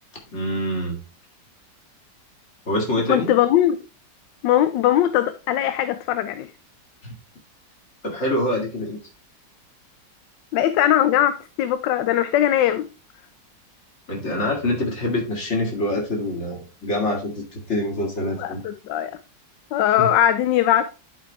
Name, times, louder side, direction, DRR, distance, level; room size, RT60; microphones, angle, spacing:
voice 1, 0.3-1.0 2.7-3.3 7.0-7.1 8.0-9.0 14.1-17.3 17.7-18.6 20.0-20.1, left 1 dB, 40° left, 2.3 m, -25 dB
voice 2, 3.1-3.8 4.4-6.5 10.5-12.9 18.4-19.1 19.7-20.9, left 11 dB, 80° left, 1.2 m, -20 dB
10.5 x 5.0 x 3.3 m
omnidirectional pair, 2.0 m